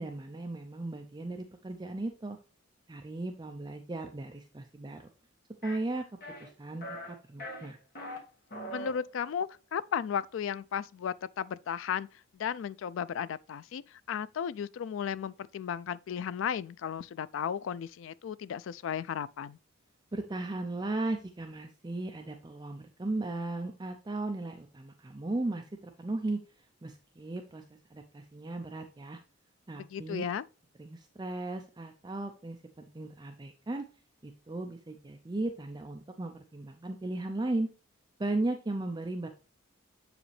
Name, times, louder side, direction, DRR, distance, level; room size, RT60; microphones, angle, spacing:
voice 1, 0.0-2.4 2.9-5.1 5.6-6.0 6.4-7.8 20.1-26.4 26.8-29.2 29.7-30.2 30.8-33.9 34.2-37.7 38.2-39.3, right 2 dB, 20° right, 0.4 m, -36 dB
sound 1, 5.6-5.8 6.2-6.5 6.8-7.1 7.4-8.2 8.5-8.9, equal, 45° left, 1.5 m, -41 dB
voice 2, 8.7-12.1 12.3-19.6 29.7-30.5, left 8 dB, 65° left, 0.3 m, -35 dB
7.1 x 4.9 x 3.2 m
head